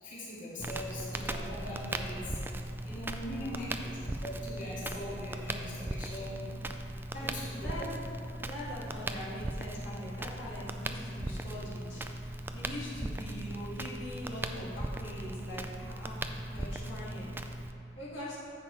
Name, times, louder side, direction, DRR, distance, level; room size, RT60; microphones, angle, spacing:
voice 1, 0.0-2.4 2.8-3.9 4.2-6.4 7.2-7.7 15.8-15.9, left 1 dB, 45° left, -8 dB, 2.1 m, -41 dB
Crackle, 0.6-17.7, right 1 dB, 10° right, 0.3 m, -38 dB
voice 2, 3.3-3.7 7.1-8.0 8.4-16.3 16.5-17.3 18.0-18.4, equal, 75° left, -9 dB, 2.2 m, -42 dB
10.0 x 7.6 x 3.2 m, 2.6 s
head